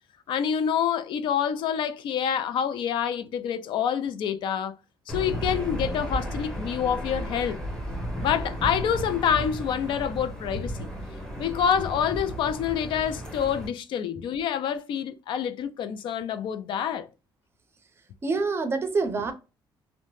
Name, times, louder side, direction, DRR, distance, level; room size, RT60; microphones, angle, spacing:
voice 1, 0.3-4.8 5.1-7.6 8.2-10.9 11.4-17.1, left 8 dB, 65° left, 0.4 m, -27 dB
Aircraft / Engine, 5.1-13.7, equal, 5° left, 0.8 m, -34 dB
voice 2, 18.2-19.3, right 4 dB, 30° right, 0.5 m, -26 dB
2.7 x 2.1 x 3.0 m
cardioid pair, 145°, 9 cm